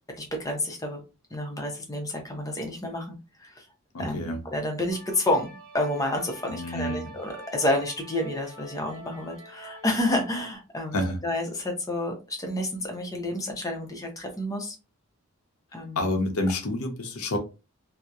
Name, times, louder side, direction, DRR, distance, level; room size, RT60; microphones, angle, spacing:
voice 1, 0.1-1.0 1.3-3.6 4.0-11.0 11.2-14.8 15.7-16.1, left 1 dB, 15° left, 3 dB, 0.5 m, -30 dB
voice 2, 3.9-4.4 6.5-7.2 10.9-11.2 16.0-17.4, left 1 dB, 80° left, 3 dB, 0.7 m, -28 dB
sound 1, 4.9-10.6, right 2 dB, 65° right, 0.9 m, -46 dB
2.7 x 2.0 x 2.3 m, 0.30 s
head